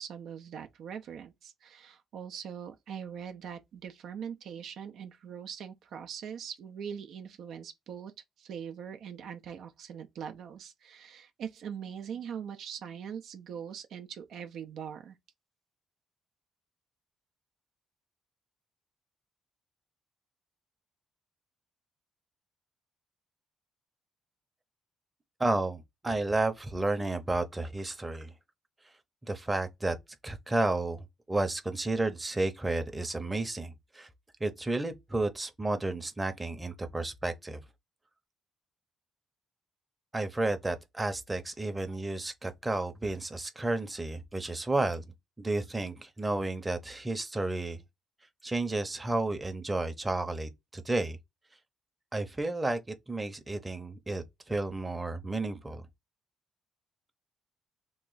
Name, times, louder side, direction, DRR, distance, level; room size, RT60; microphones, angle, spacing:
voice 1, 0.0-8.1 8.4-15.2, right 8 dB, 75° right, 0.5 m, -42 dB
voice 2, 25.4-28.3 29.2-30.0 30.2-34.1 34.4-37.6 40.1-47.8 48.4-51.2 52.1-55.9, right 2 dB, 15° right, 0.7 m, -32 dB
3.1 x 2.3 x 3.9 m
cardioid pair, 90°, 0 cm